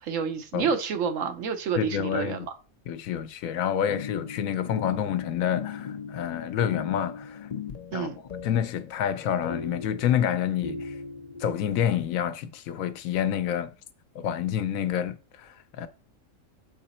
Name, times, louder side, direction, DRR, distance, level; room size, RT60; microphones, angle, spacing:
voice 1, 0.0-2.4 7.9-8.2, right 6 dB, 70° right, 1.1 m, -29 dB
voice 2, 1.8-2.5 2.9-7.5 7.9-8.1 8.4-10.9 11.4-13.7 14.1-15.9, left 9 dB, 80° left, 1.0 m, -28 dB
sound 1, 3.9-12.1, left 6 dB, 45° left, 0.6 m, -39 dB
6.5 x 3.9 x 4.2 m
omnidirectional pair, 1.4 m